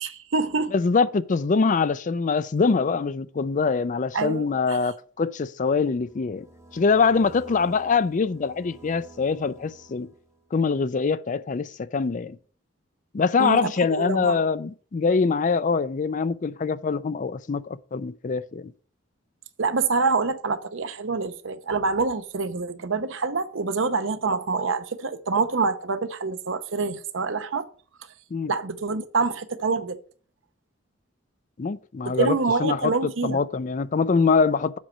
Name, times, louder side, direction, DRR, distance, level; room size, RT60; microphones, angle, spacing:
voice 1, 0.0-0.7 4.1-4.8 13.4-14.4 19.6-27.7 28.5-30.0 32.1-33.4, right 4 dB, 80° right, 0.8 m, -26 dB
voice 2, 0.7-6.5 6.7-10.1 10.5-12.4 13.1-18.7 28.3-28.5 31.6-34.8, left 4 dB, 40° left, 0.4 m, -24 dB
sound 1, 5.9-10.5, right 2 dB, 15° right, 1.1 m, -49 dB
7.5 x 4.4 x 6.5 m
head